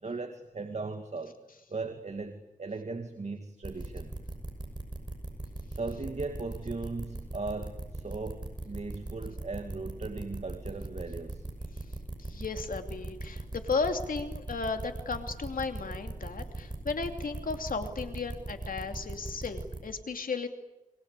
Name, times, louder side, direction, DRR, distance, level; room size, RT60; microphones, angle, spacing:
voice 1, 0.0-1.4 1.7-4.1 5.7-11.5, right 3 dB, 55° right, 7 dB, 2.2 m, -38 dB
sound 1, 3.6-19.8, right 2 dB, 35° right, 6.3 m, -39 dB
voice 2, 12.2-20.5, left 4 dB, 90° left, 6 dB, 2.8 m, -34 dB
29.5 x 23.5 x 8.3 m, 0.96 s
wide cardioid pair, 70°, 14 cm